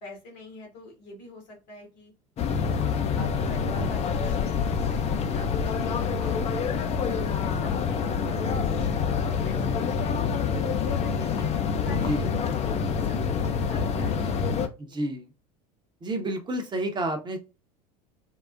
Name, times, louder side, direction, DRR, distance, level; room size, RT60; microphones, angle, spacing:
voice 1, 0.0-2.1 2.8-6.5 6.9-10.4 10.8-11.5 11.8-15.0, left 1 dB, 75° left, 1 dB, 1.5 m, -45 dB
sound 1, 2.4-14.7, left 6 dB, 30° left, 0.5 m, -26 dB
voice 2, 14.8-15.3 16.0-17.4, right 1 dB, 20° right, 6 dB, 0.8 m, -30 dB
3.7 x 2.0 x 2.5 m, 0.30 s
hypercardioid pair, 75°, 21 cm